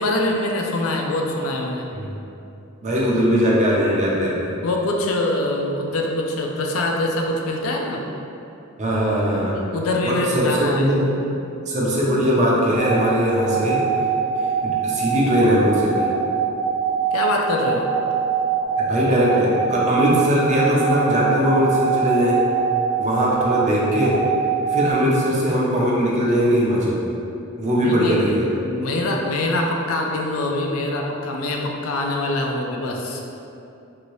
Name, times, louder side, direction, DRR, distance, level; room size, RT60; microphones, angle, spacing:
voice 1, 0.0-1.9 4.6-8.0 9.7-10.9 17.1-17.9 27.8-33.2, left 1 dB, 75° left, 1 dB, 0.4 m, -24 dB
voice 2, 2.8-4.5 8.8-9.6 10.0-11.1 11.7-13.8 14.6-16.1 18.8-22.4 23.0-24.2 24.7-27.0 27.6-28.5, equal, 35° right, -5 dB, 0.5 m, -20 dB
sound 1, 12.8-24.9, right 5 dB, 90° left, 1.1 m, -24 dB
2.8 x 2.7 x 3.0 m, 2.7 s
head